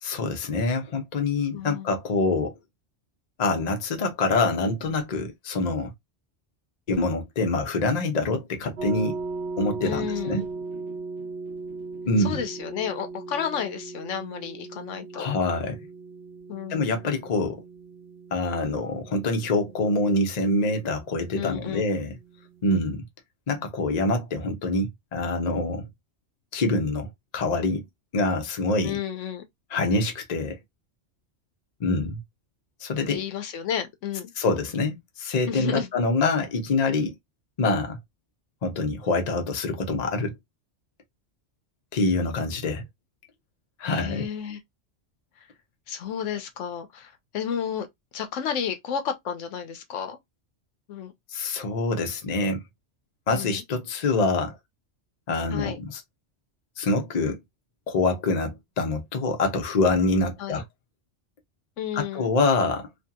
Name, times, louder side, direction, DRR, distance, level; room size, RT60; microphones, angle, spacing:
voice 1, 0.0-2.6 3.4-5.9 6.9-9.2 9.6-10.4 12.1-12.4 15.1-15.8 16.7-17.6 18.3-22.1 22.6-23.1 23.5-25.8 26.5-27.8 28.1-29.0 29.7-30.6 31.8-32.2 32.8-33.2 34.4-37.2 37.6-38.0 38.6-40.4 41.9-42.8 43.8-44.3 51.3-52.6 53.3-54.6 55.3-56.0 56.8-57.4 57.9-60.6 61.9-62.9, left 3 dB, 40° left, 0.7 m, -25 dB
voice 2, 1.5-1.9 9.8-10.5 12.2-15.3 16.5-16.9 21.3-21.9 28.8-29.4 33.1-34.3 35.5-35.9 43.8-44.6 45.4-45.5 45.9-47.9 48.1-50.2 50.9-51.1 53.3-53.6 55.5-55.8 60.4-60.6 61.8-62.3, left 8 dB, 90° left, 1.0 m, -32 dB
sound 1, 8.8-22.9, right 3 dB, 60° right, 0.9 m, -38 dB
2.7 x 2.5 x 2.2 m
omnidirectional pair, 1.2 m